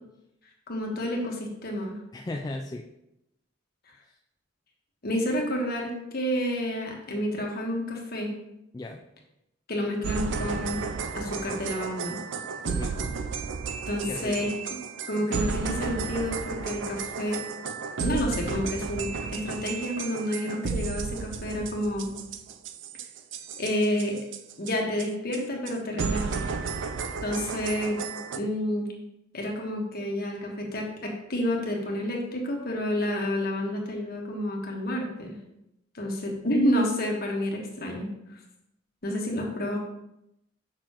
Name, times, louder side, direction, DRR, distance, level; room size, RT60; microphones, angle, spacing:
voice 1, 0.7-2.0 5.0-8.3 9.7-10.8 11.1-12.2 13.9-14.5 15.1-17.4 18.0-22.1 23.6-24.2 24.6-26.5 27.2-28.0 28.3-28.9 29.3-35.3 35.9-38.1 39.0-39.8, equal, 50° left, 0 dB, 1.3 m, -29 dB
voice 2, 2.1-2.9 4.0-4.2 8.7-9.0 12.6-13.1 14.1-14.5, left 2 dB, 20° left, 1 dB, 0.3 m, -37 dB
sound 1, 10.0-24.7 25.0-25.1 25.3-25.4 25.7-25.8 26.0-28.4, right 5 dB, 70° right, 0.4 m, -33 dB
6.6 x 5.8 x 3.0 m, 0.84 s
head